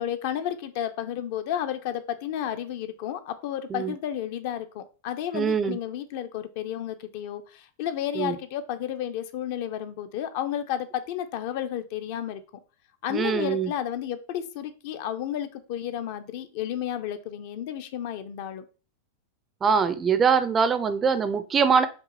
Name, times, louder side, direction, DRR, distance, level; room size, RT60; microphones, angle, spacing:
voice 1, 0.0-12.4 13.0-18.6, left 10 dB, 50° left, 10 dB, 0.4 m, -32 dB
voice 2, 5.3-5.8 8.2-8.4 13.1-13.7 19.6-21.9, right 6 dB, 20° right, 11 dB, 0.3 m, -23 dB
5.2 x 2.5 x 2.8 m, 0.35 s
figure-of-eight pair, 90°, 0 cm